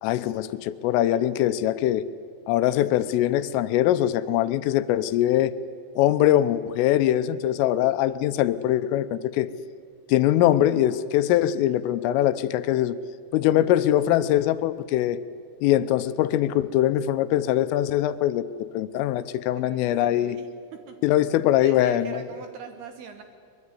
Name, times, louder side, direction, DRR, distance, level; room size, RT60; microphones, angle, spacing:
voice 1, 0.0-2.0 2.5-5.5 6.0-9.5 10.1-13.0 13.3-15.2 15.6-18.5 18.7-20.4 21.0-22.2, left 12 dB, 80° left, 13 dB, 3.3 m, -22 dB
voice 2, 19.5-21.0 21.6-23.2, right 6 dB, 70° right, 7 dB, 2.7 m, -42 dB
23.0 x 22.5 x 9.8 m, 2.3 s
omnidirectional pair, 5.9 m